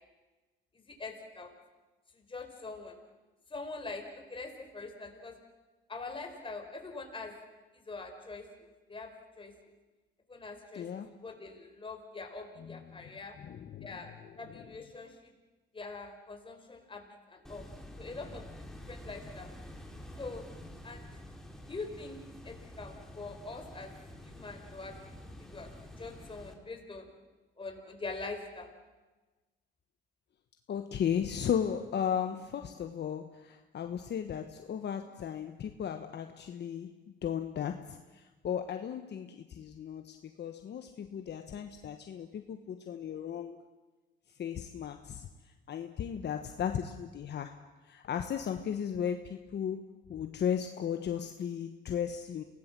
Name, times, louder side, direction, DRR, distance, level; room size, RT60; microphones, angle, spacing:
voice 1, 0.9-1.5 2.1-2.9 3.5-5.3 5.9-7.3 7.9-8.5 8.9-9.5 10.3-13.4 13.8-14.1 14.4-15.3 15.7-17.7 18.0-19.5 20.2-20.4 20.8-21.1 21.7-23.9 24.2-25.7 26.0-27.1 27.6-28.7, left 3 dB, 25° left, 4 dB, 4.7 m, -44 dB
voice 2, 10.7-11.1 12.6-13.0 13.4-14.6 30.7-43.6 44.4-45.3 45.7-47.6 47.8-49.8 50.1-52.4, left 8 dB, 60° left, 7 dB, 1.3 m, -36 dB
sound 1, 17.4-26.5, left 1 dB, ahead, 3.4 m, -48 dB
27.0 x 18.5 x 7.6 m, 1.2 s
cardioid pair, 90°, 20 cm